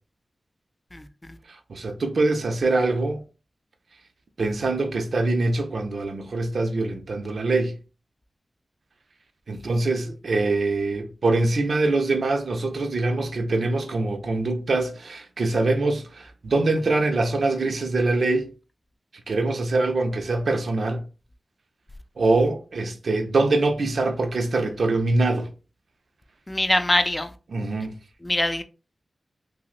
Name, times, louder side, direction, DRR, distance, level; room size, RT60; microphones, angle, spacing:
voice 1, 0.9-1.4 26.5-27.3 28.2-28.6, left 1 dB, 20° left, 0.4 m, -23 dB
voice 2, 1.5-3.2 4.4-7.8 9.5-18.5 19.3-21.1 22.2-25.5 27.5-27.9, right 2 dB, 75° right, 0.5 m, -24 dB
5.7 x 2.0 x 2.4 m
wide cardioid pair, 80°, 0 cm